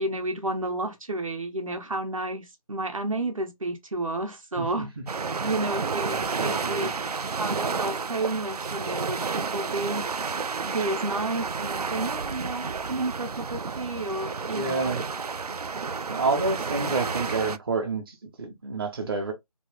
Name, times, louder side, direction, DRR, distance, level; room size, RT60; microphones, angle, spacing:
voice 1, 0.0-4.9 5.4-7.0 7.4-10.1 10.6-15.6, right 2 dB, 65° right, 1.0 m, -31 dB
sound 1, 5.1-17.6, right 5 dB, 85° right, 0.4 m, -31 dB
voice 2, 6.1-6.9 14.5-15.0 16.1-19.3, right 3 dB, 40° right, 0.9 m, -29 dB
3.1 x 2.7 x 3.3 m
figure-of-eight pair, 160°, 19 cm